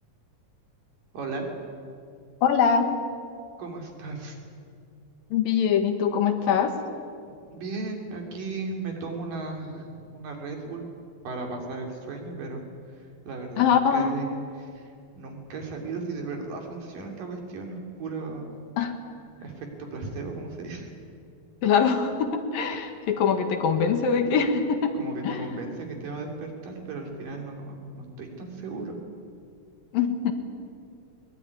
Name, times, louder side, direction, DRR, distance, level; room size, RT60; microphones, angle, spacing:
voice 1, 1.1-1.5 3.6-4.4 7.5-10.9 11.2-12.6 12.9-14.3 14.6-18.5 19.4-20.9 24.9-29.0, right 3 dB, 65° right, 2 dB, 4.9 m, -36 dB
voice 2, 2.4-2.9 5.3-6.7 13.6-14.2 18.8-18.9 21.6-25.0 25.2-25.6 29.9-30.3, left 6 dB, 70° left, 6 dB, 3.4 m, -23 dB
22.5 x 21.0 x 9.9 m, 2.3 s
omnidirectional pair, 4.2 m